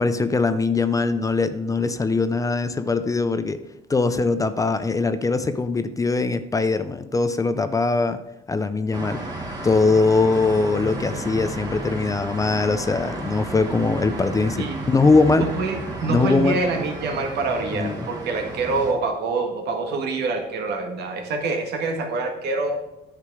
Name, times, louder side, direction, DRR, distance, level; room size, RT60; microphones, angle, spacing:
voice 1, 0.0-3.6 3.9-8.2 8.5-9.2 9.6-15.5 16.1-16.6 17.7-18.0, left 3 dB, 20° left, 11 dB, 0.5 m, -21 dB
sound 1, 8.9-18.9, right 2 dB, 25° right, 2.0 m, -33 dB
voice 2, 15.4-22.8, right 3 dB, 75° right, 4 dB, 1.8 m, -26 dB
10.0 x 6.7 x 4.8 m, 0.94 s
cardioid pair, 110°, 17 cm